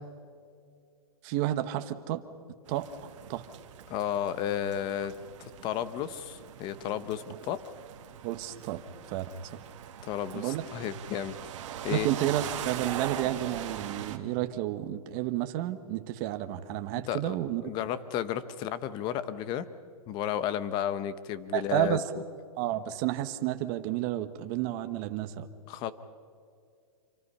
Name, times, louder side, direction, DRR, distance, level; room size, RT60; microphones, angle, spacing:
voice 1, 1.2-2.2 2.7-3.4 7.3-7.4 8.2-8.8 9.1-9.6 10.3-10.6 11.9-17.6 21.5-22.0 22.6-25.5, right 13 dB, 30° right, 9 dB, 1.2 m, -31 dB
sound 1, 2.7-14.2, right 10 dB, 55° right, 1.8 m, -41 dB
voice 2, 3.9-5.1 5.4-7.6 10.0-11.4 11.8-12.1 17.1-17.3 17.6-19.7 20.1-22.0 25.7-25.9, left 10 dB, 25° left, 14 dB, 0.9 m, -32 dB
27.0 x 24.5 x 5.6 m, 2.2 s
hypercardioid pair, 160°, 19 cm